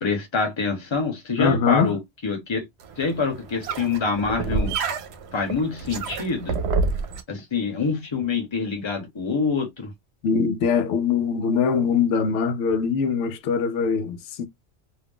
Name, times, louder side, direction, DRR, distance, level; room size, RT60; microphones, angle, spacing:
voice 1, 0.0-2.6 3.0-4.7 5.3-6.6 7.3-9.9, left 4 dB, 25° left, 0.8 m, -26 dB
voice 2, 1.4-2.0 10.2-14.5, left 6 dB, 85° left, 0.9 m, -22 dB
sound 1, 2.8-7.2, right 4 dB, 70° right, 0.8 m, -28 dB
2.5 x 2.2 x 3.5 m
omnidirectional pair, 1.2 m